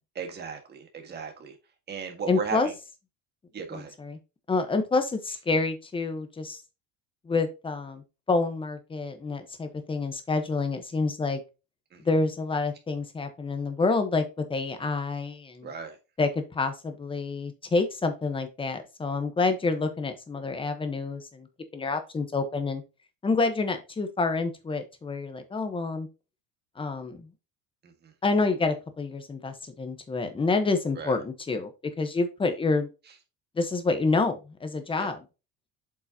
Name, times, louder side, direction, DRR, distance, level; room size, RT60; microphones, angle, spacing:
voice 1, 0.1-1.5 1.9-2.7 3.5-3.9 11.9-12.0 15.6-16.0 27.8-28.1 30.9-31.2 35.0-35.1, right 5 dB, 30° right, 5 dB, 1.7 m, -36 dB
voice 2, 2.3-2.7 3.7-4.2 4.5-6.6 7.3-8.0 8.3-11.4 12.0-14.2 14.5-15.7 16.2-21.5 21.7-22.8 23.2-26.1 26.8-27.3 28.2-31.7 32.0-32.9 33.6-35.2, left 3 dB, 15° left, 8 dB, 1.1 m, -28 dB
8.0 x 5.4 x 2.9 m, 0.29 s
cardioid pair, 150°, 35 cm